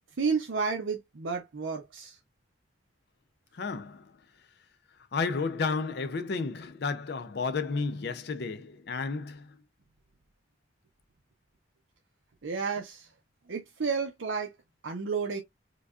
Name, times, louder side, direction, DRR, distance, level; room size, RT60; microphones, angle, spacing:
voice 1, 0.2-2.2 12.4-13.1 13.5-14.5 14.8-15.4, right 5 dB, 80° right, 0.6 m, -31 dB
voice 2, 3.5-4.1 5.1-9.6, left 4 dB, 55° left, 0.4 m, -32 dB
4.8 x 2.3 x 2.4 m
head